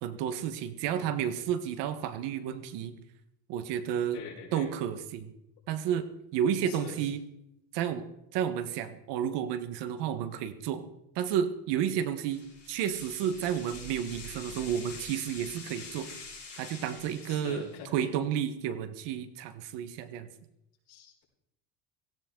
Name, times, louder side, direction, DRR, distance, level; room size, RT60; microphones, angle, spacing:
voice 1, 0.0-3.0 3.5-4.2 4.5-5.3 5.7-6.1 6.3-7.2 7.7-8.1 8.3-10.8 11.1-16.1 16.6-17.6 17.9-20.3, right 9 dB, 85° right, 10 dB, 1.5 m, -31 dB
voice 2, 4.1-4.7 6.7-7.0 17.3-17.9 20.9-21.2, left 8 dB, 75° left, -2 dB, 5.4 m, -43 dB
sound 1, 12.3-17.9, left 3 dB, 25° left, 7.3 m, -46 dB
17.0 x 16.5 x 3.9 m, 0.85 s
cardioid pair, 140°, 41 cm